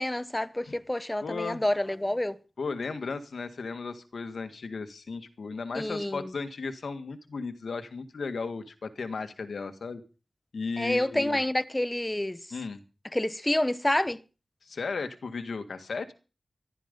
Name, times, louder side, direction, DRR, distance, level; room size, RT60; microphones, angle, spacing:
voice 1, 0.0-2.4 5.7-6.3 10.8-12.5 13.1-14.2, left 1 dB, 15° left, 0.7 m, -28 dB
voice 2, 1.2-1.6 2.6-10.0 10.5-11.4 12.5-12.8 14.6-16.1, left 4 dB, 90° left, 1.7 m, -35 dB
14.5 x 13.0 x 5.3 m
wide cardioid pair, 75°, 0 cm